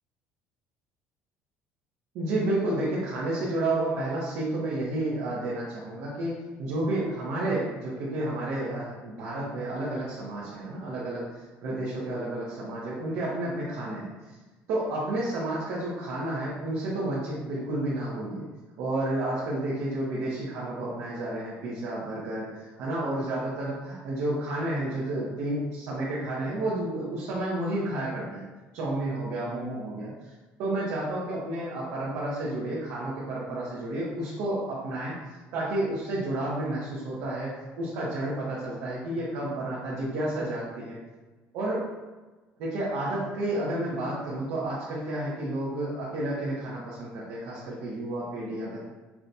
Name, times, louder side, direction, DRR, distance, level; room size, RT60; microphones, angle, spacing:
voice 1, 2.1-11.3 11.6-14.4 14.7-18.4 18.8-28.4 28.7-30.3 30.6-41.0 41.5-41.8 42.6-48.8, right 1 dB, 70° right, -6 dB, 0.9 m, -31 dB
5.8 x 2.2 x 2.6 m, 1.2 s
cardioid pair, 145°, 5 cm